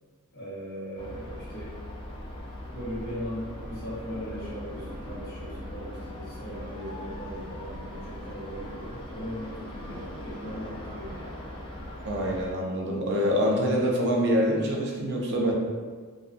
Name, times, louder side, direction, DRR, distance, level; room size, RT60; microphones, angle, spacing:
voice 1, 0.3-1.8 2.7-11.4, equal, 50° left, -10 dB, 1.1 m, -38 dB
sound 1, 1.0-12.5, left 1 dB, 25° left, 0.3 m, -40 dB
voice 2, 12.0-15.5, equal, 50° right, -2 dB, 0.4 m, -25 dB
2.3 x 2.2 x 2.5 m, 1.5 s
head